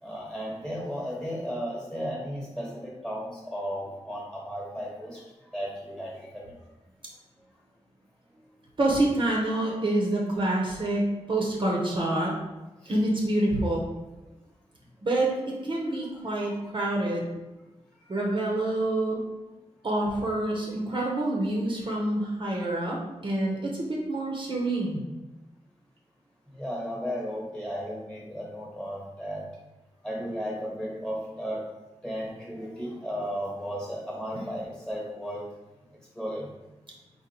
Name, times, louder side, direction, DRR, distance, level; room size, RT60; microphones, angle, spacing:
voice 1, 0.0-5.2 5.5-6.5 12.8-12.9 16.2-16.5 18.0-18.1 26.5-29.4 30.0-31.6 32.0-35.5 36.1-36.6, equal, 5° left, -3 dB, 1.3 m, -35 dB
voice 2, 8.8-12.3 12.9-13.8 15.0-17.3 18.1-19.2 19.8-25.0 34.4-34.5, right 1 dB, 45° right, -2 dB, 0.7 m, -27 dB
3.9 x 2.1 x 4.3 m, 1.1 s
wide cardioid pair, 100°, 11 cm